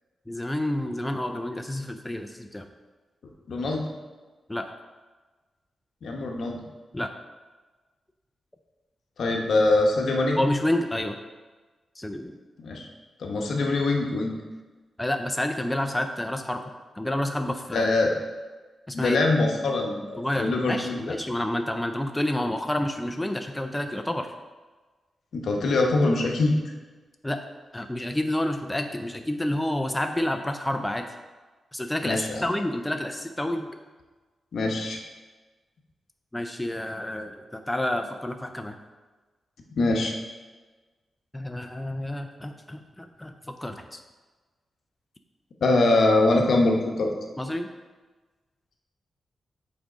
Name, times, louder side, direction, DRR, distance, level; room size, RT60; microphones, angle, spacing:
voice 1, 0.3-2.7 4.5-4.7 6.9-7.1 10.4-11.2 12.0-12.3 15.0-16.6 16.9-17.9 18.9-19.2 20.2-24.3 27.2-27.4 27.7-31.1 31.7-33.7 36.3-38.8 41.3-44.0 47.4-47.7, left 1 dB, 10° left, 5 dB, 0.3 m, -29 dB
voice 2, 3.5-3.8 6.0-6.6 9.2-10.4 12.6-12.9 13.2-14.4 17.7-18.1 18.9-21.0 25.3-26.6 32.0-32.5 34.5-35.0 39.7-40.1 45.6-47.1, left 2 dB, 75° left, 1 dB, 0.9 m, -23 dB
6.3 x 3.5 x 5.0 m, 1.3 s
wide cardioid pair, 105°, 0 cm